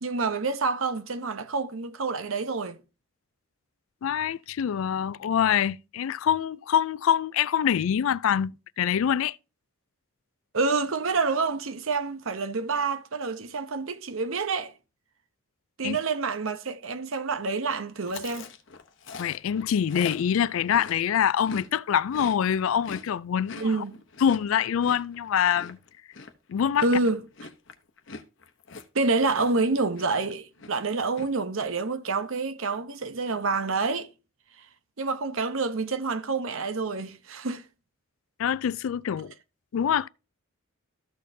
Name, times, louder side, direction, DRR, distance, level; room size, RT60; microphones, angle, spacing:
voice 1, 0.0-2.8 10.5-14.7 15.8-18.5 23.5-24.0 26.8-27.2 28.9-34.1 35.0-37.6, right 3 dB, 75° right, 0.8 m, -28 dB
voice 2, 4.0-9.4 15.8-16.0 19.2-23.7 24.2-25.8 26.5-26.8 38.4-39.3 39.7-40.1, left 8 dB, 75° left, 0.3 m, -25 dB
Chewing mastication, 18.0-21.7 22.0-29.7 30.0-30.3 30.6-31.3, left 4 dB, 60° left, 0.9 m, -42 dB
13.5 x 6.4 x 2.7 m
head